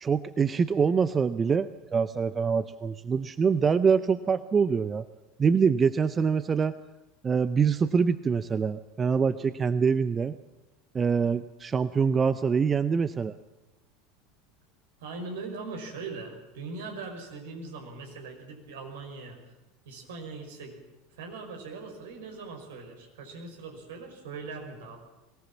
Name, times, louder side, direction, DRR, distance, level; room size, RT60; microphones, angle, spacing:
voice 1, 0.0-5.1 5.4-6.8 7.2-10.4 10.9-13.4, right 6 dB, 25° right, 14 dB, 0.7 m, -25 dB
voice 2, 15.0-19.4 19.9-20.8 21.1-25.0, right 4 dB, 70° right, 3 dB, 5.2 m, -40 dB
22.0 x 18.0 x 7.3 m, 1.0 s
hypercardioid pair, 80°, 0 cm